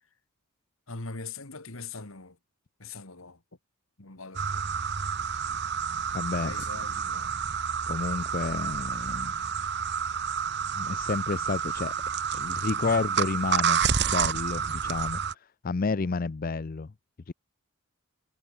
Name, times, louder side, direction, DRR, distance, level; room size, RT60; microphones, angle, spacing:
voice 1, 0.9-2.4 2.8-3.4 4.0-4.7 6.4-7.4, left 4 dB, 70° left, 2.3 m, -42 dB
sound 1, 4.3-15.3, right 6 dB, 50° right, 1.1 m, -29 dB
voice 2, 6.1-6.5 7.9-9.3 10.8-11.9 12.3-16.9 17.3-17.4, left 4 dB, 40° left, 0.5 m, -30 dB
head